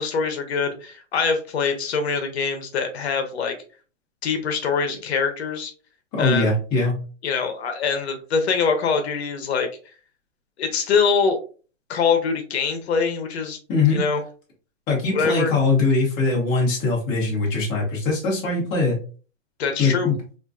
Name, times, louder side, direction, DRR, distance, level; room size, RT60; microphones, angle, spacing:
voice 1, 0.0-3.5 4.2-5.7 6.2-6.5 7.2-9.7 10.6-11.4 11.9-13.6 13.9-14.2 15.1-15.5 19.6-20.1, left 5 dB, 60° left, 6 dB, 0.7 m, -23 dB
voice 2, 6.1-6.9 13.7-14.0 14.9-19.0 19.8-20.1, left 3 dB, 10° left, -3 dB, 0.5 m, -21 dB
3.4 x 2.5 x 2.3 m, 0.37 s
hypercardioid pair, 155°, 37 cm